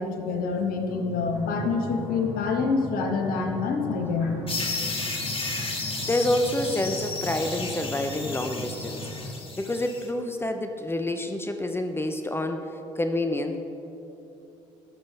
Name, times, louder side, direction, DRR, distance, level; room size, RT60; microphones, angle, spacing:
voice 1, 0.0-4.3, left 4 dB, 65° left, 4 dB, 1.6 m, -26 dB
sound 1, 1.2-9.2, equal, 75° right, 2.8 m, -38 dB
sound 2, 4.5-10.1, left 3 dB, 35° left, 1.8 m, -33 dB
voice 2, 6.0-9.1 9.6-13.6, left 1 dB, 15° left, 6 dB, 0.8 m, -28 dB
19.0 x 7.5 x 3.5 m, 2.9 s
hypercardioid pair, 55°, 16 cm